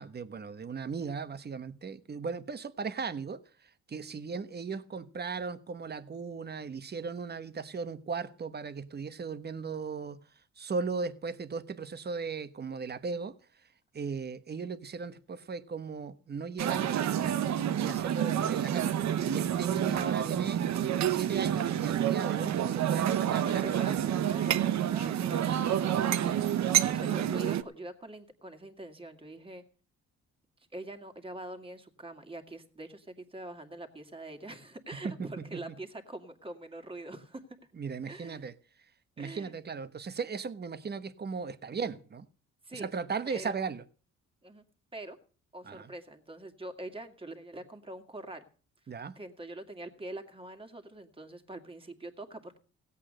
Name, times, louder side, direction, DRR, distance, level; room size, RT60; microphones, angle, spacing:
voice 1, 0.0-3.4 3.9-10.2 10.6-13.3 13.9-17.4 17.7-24.0 26.8-27.0 35.0-35.6 37.8-38.5 39.2-42.3 42.7-43.8 45.7-45.9 48.9-49.1, right 5 dB, 35° right, 1.2 m, -37 dB
sound 1, 16.6-27.6, right 10 dB, 65° right, 1.0 m, -28 dB
voice 2, 23.1-29.6 30.7-37.4 38.1-38.4 39.2-39.5 42.6-42.9 43.3-43.5 44.4-44.6 44.9-45.2 45.5-48.4 49.2-52.6, right 2 dB, 20° right, 2.2 m, -44 dB
16.5 x 8.4 x 6.6 m
cardioid pair, 90°, 30 cm